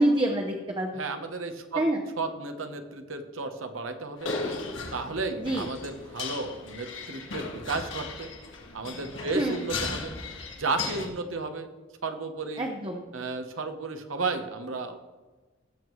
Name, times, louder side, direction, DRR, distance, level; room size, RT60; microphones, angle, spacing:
voice 1, 0.0-1.0 1.8-2.0 5.4-5.7 9.3-9.6 12.6-13.0, right 1 dB, 25° right, 1 dB, 0.8 m, -26 dB
voice 2, 0.9-1.9 2.2-4.3 4.9-8.3 8.7-10.2 10.6-11.7 12.0-12.6 13.1-15.0, right 3 dB, 85° right, 8 dB, 1.1 m, -33 dB
sound 1, 4.2-11.1, left 3 dB, 65° left, 1.8 m, -36 dB
17.0 x 7.1 x 3.2 m, 1.2 s
head